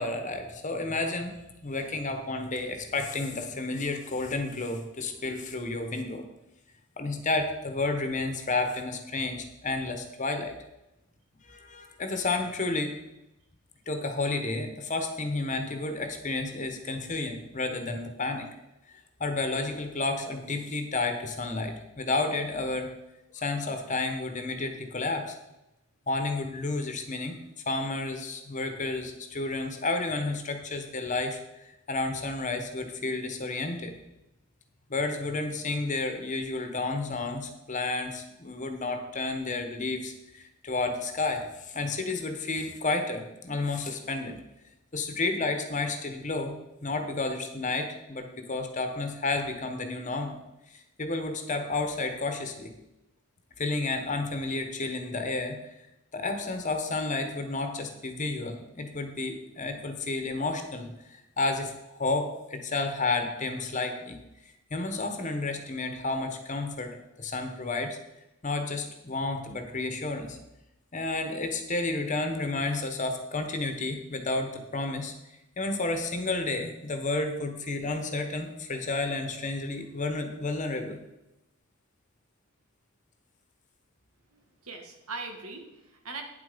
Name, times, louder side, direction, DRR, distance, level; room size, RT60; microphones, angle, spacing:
voice 1, 0.0-6.2 7.0-10.5 11.4-13.0 13.9-18.5 19.2-22.9 23.3-25.4 26.1-27.4 27.7-31.4 31.6-33.9 34.9-44.4 44.9-46.5 46.8-50.4 51.0-52.7 53.6-55.6 56.1-64.2 64.7-68.0 68.4-70.4 70.9-75.1 75.6-81.0, left 3 dB, 35° left, 6 dB, 1.3 m, -31 dB
voice 2, 84.3-86.2, right 3 dB, 85° right, 4 dB, 1.9 m, -41 dB
9.9 x 7.9 x 5.2 m, 0.91 s
head